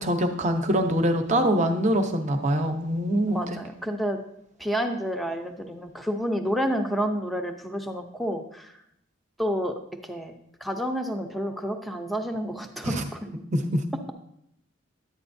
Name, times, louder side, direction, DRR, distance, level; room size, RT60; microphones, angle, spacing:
voice 1, 0.0-3.6 12.8-13.1 13.5-13.8, equal, 35° right, 6 dB, 0.8 m, -24 dB
voice 2, 3.3-4.2 4.6-8.7 9.4-9.7 10.0-10.3 10.6-13.2, equal, ahead, 5 dB, 0.6 m, -29 dB
10.5 x 8.6 x 2.6 m, 0.76 s
head